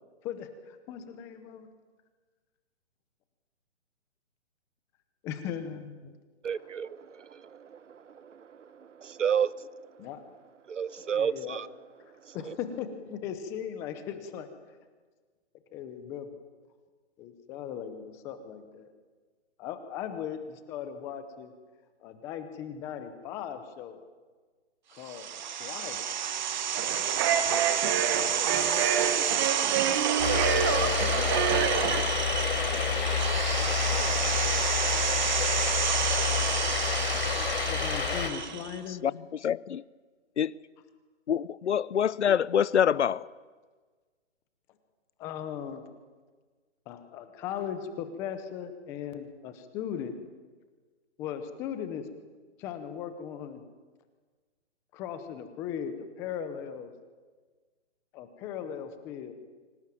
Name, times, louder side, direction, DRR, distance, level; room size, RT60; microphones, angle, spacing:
voice 1, 0.2-1.7 5.2-6.2 10.0-10.2 10.9-11.6 12.3-14.5 15.7-16.4 17.2-18.9 19.6-21.5 22.0-24.0 24.9-26.1 27.8-29.0 37.6-39.0 45.2-45.8 46.9-50.1 51.2-52.1 52.6-53.6 54.9-56.9 58.1-59.3, left 8 dB, 10° left, 0.7 m, -38 dB
voice 2, 6.4-8.4 9.0-9.7 10.7-11.7 12.3-12.5, right 7 dB, 85° right, 1.1 m, -32 dB
sound 1, 25.0-38.8, right 9 dB, 40° right, 1.1 m, -30 dB
sound 2, 26.7-32.0, right 8 dB, 20° right, 1.2 m, -28 dB
sound 3, 30.2-38.3, left 6 dB, 55° left, 4.3 m, -28 dB
voice 3, 39.4-39.8 40.4-40.5 41.3-43.3, left 8 dB, 70° left, 0.8 m, -25 dB
24.5 x 17.5 x 9.1 m
hypercardioid pair, 160°, 36 cm